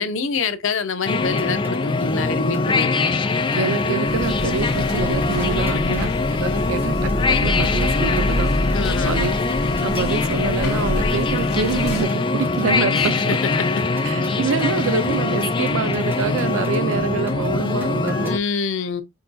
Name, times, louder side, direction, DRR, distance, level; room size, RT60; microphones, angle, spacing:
voice 1, 0.0-3.0 5.6-6.0 8.7-9.3 12.9-13.1 13.6-13.7 18.3-19.0, left 4 dB, 75° left, 0.7 m, -26 dB
sound 1, 1.1-18.4, left 3 dB, 25° left, 0.3 m, -22 dB
sound 2, 1.2-18.4, right 2 dB, 10° right, 0.7 m, -38 dB
voice 2, 3.5-9.3 9.8-13.2 14.0-18.4, right 6 dB, 80° right, 0.4 m, -26 dB
sound 3, 4.1-12.0, left 1 dB, 50° left, 1.1 m, -27 dB
5.9 x 2.2 x 2.5 m
head